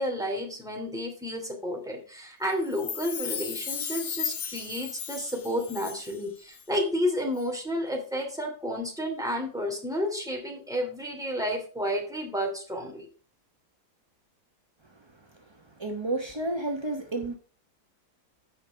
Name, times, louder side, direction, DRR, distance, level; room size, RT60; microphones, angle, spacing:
voice 1, 0.0-13.1, equal, ahead, 2.6 m, -31 dB
Chime, 2.6-6.3 6.5-6.6, left 7 dB, 55° left, 1.2 m, -35 dB
voice 2, 15.5-17.4, right 2 dB, 35° right, 0.4 m, -32 dB
8.9 x 5.3 x 5.6 m
omnidirectional pair, 2.1 m